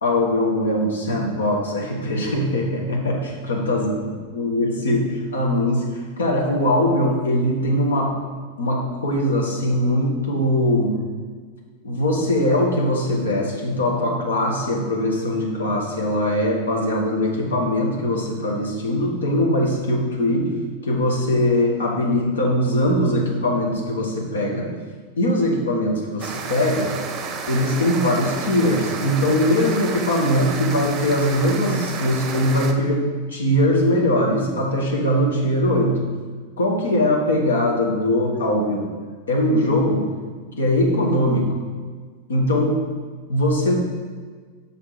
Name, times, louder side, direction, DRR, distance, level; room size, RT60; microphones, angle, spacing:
voice 1, 0.0-3.9 4.3-8.2 8.6-11.0 11.8-20.5 20.8-24.7 25.2-26.9 27.5-33.0 33.3-36.0 36.6-38.9 39.3-40.0 40.6-41.4 42.3-42.8 43.3-43.7, left 1 dB, 70° left, 0 dB, 1.3 m, -21 dB
sound 1, 26.2-32.7, right 5 dB, 30° right, 0.7 m, -31 dB
5.8 x 5.4 x 4.6 m, 1.5 s
figure-of-eight pair, 90°, 0 cm